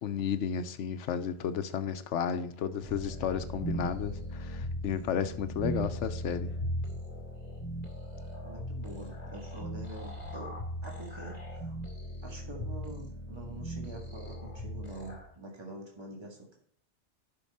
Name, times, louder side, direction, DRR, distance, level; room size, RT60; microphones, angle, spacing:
voice 1, 0.0-6.6, left 8 dB, 90° left, 1.0 m, -33 dB
sound 1, 2.8-15.3, equal, 35° left, 2.4 m, -38 dB
voice 2, 8.4-10.5 10.8-11.8 12.2-16.6, right 2 dB, 25° right, 1.7 m, -45 dB
10.5 x 5.8 x 4.1 m
omnidirectional pair, 1.2 m